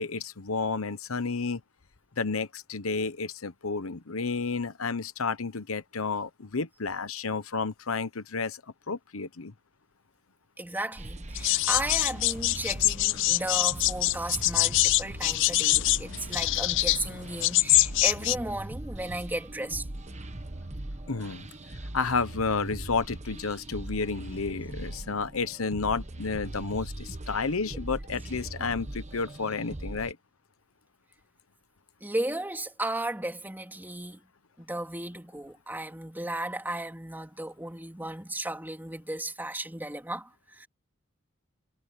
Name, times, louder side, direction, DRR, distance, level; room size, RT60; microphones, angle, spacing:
voice 1, 0.0-1.6 2.2-8.6 8.9-9.5 21.1-30.2, left 4 dB, 90° left, 1.1 m, -31 dB
voice 2, 10.6-19.8 32.0-34.2 34.6-40.7, right 1 dB, 10° right, 3.2 m, -35 dB
sound 1, 11.0-30.1, right 1 dB, 35° right, 1.2 m, -40 dB
sound 2, 11.4-18.4, left 18 dB, 60° left, 0.3 m, -25 dB
head